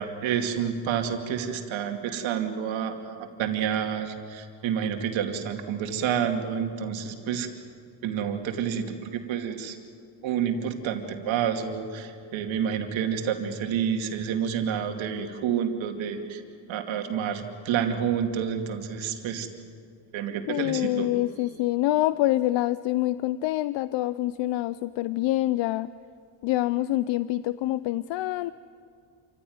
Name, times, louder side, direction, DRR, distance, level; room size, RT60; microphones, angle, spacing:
voice 1, 0.0-7.5 8.0-9.8 10.2-16.4 16.7-19.5 20.1-21.1, right 8 dB, 70° right, 4 dB, 2.5 m, -29 dB
voice 2, 20.5-25.9 26.4-28.5, left 15 dB, 65° left, 16 dB, 0.6 m, -26 dB
27.0 x 15.5 x 9.5 m, 2.3 s
cardioid pair, 110°, 47 cm